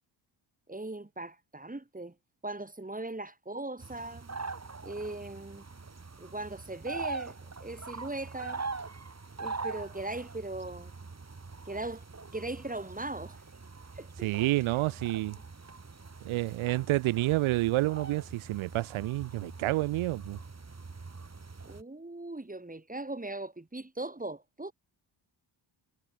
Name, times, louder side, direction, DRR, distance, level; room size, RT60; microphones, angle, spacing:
voice 1, 0.7-2.1 2.4-4.3 4.8-5.7 6.2-7.3 7.6-8.6 9.4-10.9 11.7-12.0 12.3-13.4 13.9-14.3 21.6-24.7, right 2 dB, 15° right, 6.4 m, -39 dB
sound 1, 3.8-21.8, right 4 dB, 30° right, 5.9 m, -43 dB
voice 2, 14.2-15.4 16.2-20.4, right 18 dB, 80° right, 0.6 m, -29 dB
cardioid pair, 70°, 48 cm